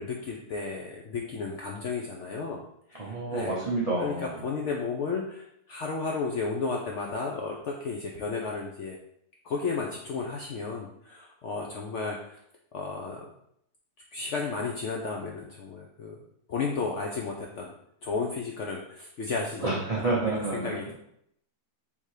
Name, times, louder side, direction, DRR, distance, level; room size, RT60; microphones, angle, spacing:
voice 1, 0.0-2.6 2.9-3.6 4.0-9.0 9.4-12.4 12.7-13.3 14.1-16.1 16.5-17.7 18.0-20.1 20.5-20.9, left 4 dB, 70° left, 0 dB, 0.7 m, -33 dB
voice 2, 3.0-4.3 19.6-20.8, right 2 dB, 50° right, -5 dB, 0.4 m, -29 dB
3.6 x 2.8 x 4.7 m, 0.73 s
omnidirectional pair, 1.7 m